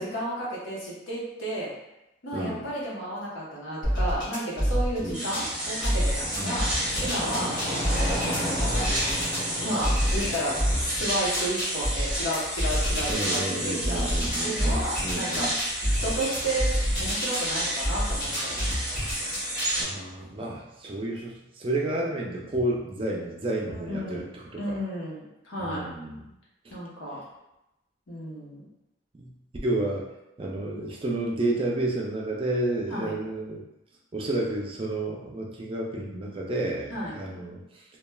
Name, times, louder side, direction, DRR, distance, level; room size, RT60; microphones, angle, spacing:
voice 1, 0.0-1.7 2.2-7.5 8.4-8.9 9.6-14.1 14.4-15.5 16.0-16.7 17.0-18.8 23.9-24.2 24.5-25.9 26.7-27.2 28.1-28.6 32.9-33.2 36.9-37.2, right 1 dB, 85° left, -6 dB, 1.0 m, -32 dB
voice 2, 2.3-2.6 5.0-5.2 6.4-6.6 7.4-7.6 13.1-15.5 19.8-24.8 25.6-26.2 26.6-26.7 29.1-29.3 29.6-30.1 30.4-33.6 34.1-37.8, right 2 dB, 25° right, -2 dB, 0.4 m, -31 dB
sound 1, 3.8-5.5 5.8-9.4 9.8-13.4 13.8-17.5 17.8-19.8, equal, 50° left, 0.9 m, -28 dB
sound 2, 5.1-19.8, right 1 dB, 5° right, 0.8 m, -31 dB
sound 3, 5.3-11.3, equal, 25° left, 1.1 m, -35 dB
3.1 x 2.2 x 2.2 m, 0.91 s
head